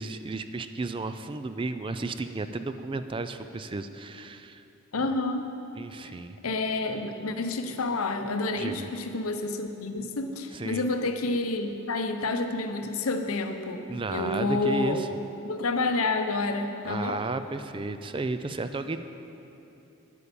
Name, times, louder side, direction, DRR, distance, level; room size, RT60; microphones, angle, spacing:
voice 1, 0.0-4.6 5.8-6.4 8.6-8.9 10.5-10.8 13.9-15.1 16.9-19.0, right 3 dB, 25° right, 10 dB, 0.4 m, -33 dB
voice 2, 4.9-5.5 6.4-13.8 14.1-15.0 15.4-17.2, left 3 dB, 90° left, 7 dB, 0.8 m, -29 dB
10.0 x 8.5 x 6.9 m, 2.9 s
head